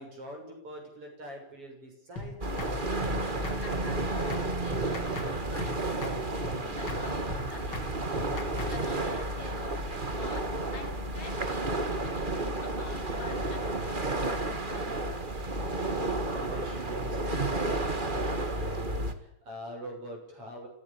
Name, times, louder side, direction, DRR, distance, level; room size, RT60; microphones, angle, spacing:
voice 1, 0.0-3.3 15.7-20.7, right 1 dB, 40° right, 2 dB, 7.8 m, -42 dB
sound 1, 2.2-2.3 2.6-2.7 3.0-3.2 3.4-3.6 3.9-4.0 4.3-4.5 4.7-5.3 5.6-5.7 6.0-6.2 6.4-6.6 6.9-7.0 7.3-7.4 7.7-7.9 8.2-8.7, left 3 dB, 35° left, 3.7 m, -38 dB
sound 2, 2.4-19.1, right 2 dB, 25° right, 1.2 m, -32 dB
voice 2, 3.6-15.2 17.2-17.3, left 4 dB, 60° left, 4 dB, 4.7 m, -48 dB
26.5 x 16.5 x 8.6 m, 0.76 s
omnidirectional pair, 3.9 m